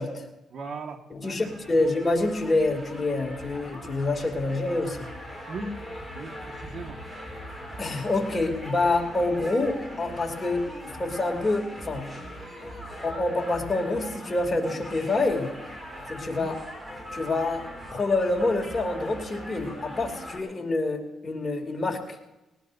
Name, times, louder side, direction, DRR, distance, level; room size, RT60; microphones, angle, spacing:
voice 1, 0.1-1.4 5.5-5.7 6.1-6.3 6.6-7.0 16.3-16.5, right 3 dB, 55° right, 4 dB, 1.7 m, -38 dB
voice 2, 1.1-5.1 7.8-10.7 11.0-12.1 13.0-15.5 16.1-16.5 17.1-22.2, left 2 dB, 25° left, 2 dB, 2.8 m, -27 dB
sound 1, 1.2-20.4, equal, 10° right, 4.0 m, -41 dB
20.0 x 19.0 x 2.7 m, 0.98 s
cardioid pair, 90°, 0 cm